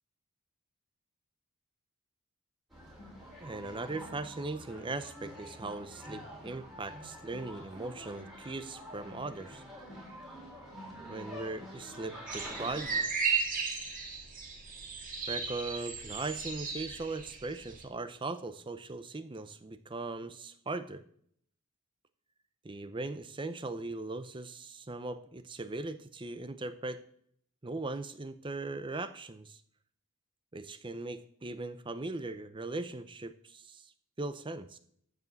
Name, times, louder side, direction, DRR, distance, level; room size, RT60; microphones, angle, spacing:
sound 1, 2.7-13.0, equal, ahead, 4.0 m, -47 dB
voice 1, 3.4-9.6 11.1-12.9 15.3-21.0 22.6-27.0 27.6-29.6 30.5-33.9 34.2-34.8, right 3 dB, 20° right, 12 dB, 0.5 m, -39 dB
sound 2, 12.3-17.8, right 5 dB, 35° right, 2.0 m, -35 dB
12.5 x 5.0 x 8.0 m, 0.66 s
head